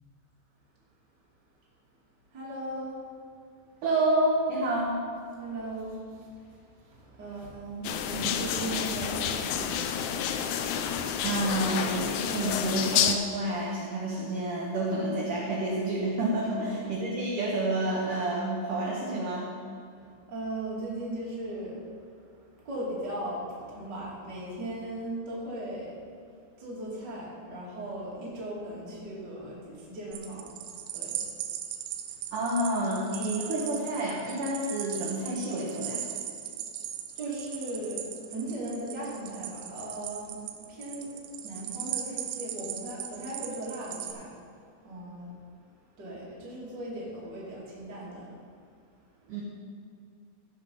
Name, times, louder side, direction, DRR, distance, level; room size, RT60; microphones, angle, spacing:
voice 1, 2.3-3.0 5.4-11.0 16.7-16.8 20.0-26.0 26.6-30.5 30.9-31.3 37.1-41.2 41.4-44.4 44.8-45.4 46.0-48.3 49.2-49.3, right 1 dB, 30° right, -6 dB, 2.5 m, -38 dB
voice 2, 3.8-4.9 11.2-19.5 32.3-36.0 49.3-49.4, right 1 dB, 65° right, -4 dB, 2.2 m, -29 dB
sound 1, 7.8-13.2, left 8 dB, 80° left, 2.7 m, -29 dB
sound 2, 30.1-44.1, right 10 dB, 80° right, 2.9 m, -38 dB
15.5 x 6.2 x 5.6 m, 2.4 s
omnidirectional pair, 5.5 m